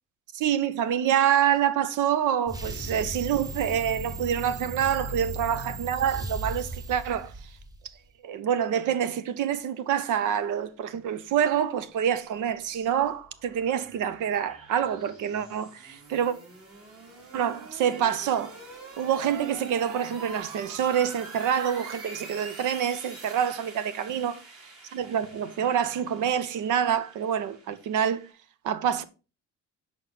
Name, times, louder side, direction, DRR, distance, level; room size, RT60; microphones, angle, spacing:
voice 1, 0.3-7.3 8.2-16.3 17.3-18.5 19.0-24.4 24.9-28.3 28.6-29.0, right 9 dB, 80° right, 0.7 m, -26 dB
sound 1, 2.5-7.9, right 2 dB, 15° right, 0.9 m, -36 dB
sound 2, 12.3-28.3, right 3 dB, 50° right, 2.8 m, -46 dB
6.1 x 4.6 x 3.9 m
cardioid pair, 90°, 30 cm